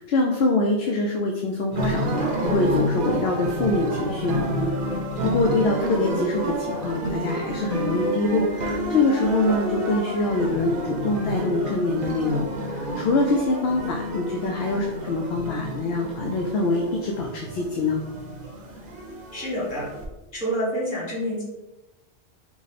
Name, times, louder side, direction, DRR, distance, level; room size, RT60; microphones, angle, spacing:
voice 1, 0.0-4.8 5.2-18.0, left 2 dB, 70° left, 1 dB, 0.8 m, -24 dB
sound 1, 1.7-20.0, right 1 dB, 50° right, 0.9 m, -29 dB
voice 2, 19.3-19.9 20.3-21.4, equal, 45° left, -6 dB, 1.7 m, -27 dB
4.7 x 2.1 x 4.1 m, 1.0 s
omnidirectional pair, 1.1 m